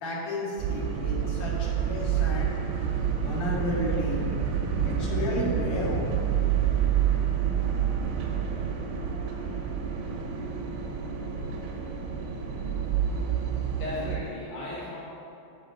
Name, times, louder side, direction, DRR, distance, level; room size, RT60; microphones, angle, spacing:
voice 1, 0.0-2.6 3.2-4.3 4.8-6.3, left 1 dB, 55° left, -6 dB, 2.2 m, -32 dB
sound 1, 0.6-14.2, right 8 dB, 85° right, 3.5 m, -28 dB
voice 2, 13.8-15.0, left 2 dB, 75° left, -7 dB, 2.1 m, -36 dB
8.5 x 8.2 x 4.1 m, 2.7 s
omnidirectional pair, 5.8 m